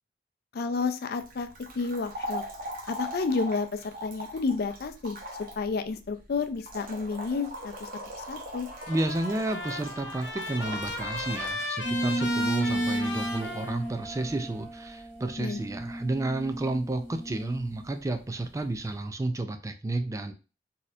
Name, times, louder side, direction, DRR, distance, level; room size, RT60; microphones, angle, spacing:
voice 1, 0.5-1.5 1.7-2.4 2.9-5.2 5.6-7.9 8.3-8.7 15.4-15.6, left 4 dB, 60° left, 8 dB, 0.4 m, -30 dB
sound 1, 1.2-11.5, equal, 55° right, 0.9 m, -40 dB
Trumpet, 8.7-14.3, left 2 dB, 75° left, 0.8 m, -36 dB
voice 2, 8.9-20.3, right 2 dB, 20° right, 7 dB, 0.3 m, -31 dB
sound 2, 11.8-17.9, right 1 dB, 15° left, 1.9 m, -33 dB
4.1 x 2.7 x 2.4 m, 0.32 s
head